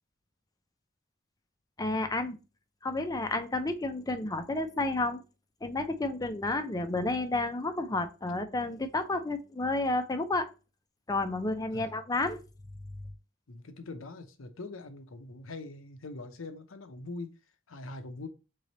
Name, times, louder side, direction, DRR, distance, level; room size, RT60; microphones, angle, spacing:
voice 1, 1.8-2.4 2.8-5.2 5.6-10.5 11.1-12.4, left 2 dB, 20° left, 0.6 m, -31 dB
voice 2, 13.5-17.3 17.7-18.3, left 2 dB, 90° left, 0.8 m, -43 dB
3.8 x 3.3 x 4.1 m
head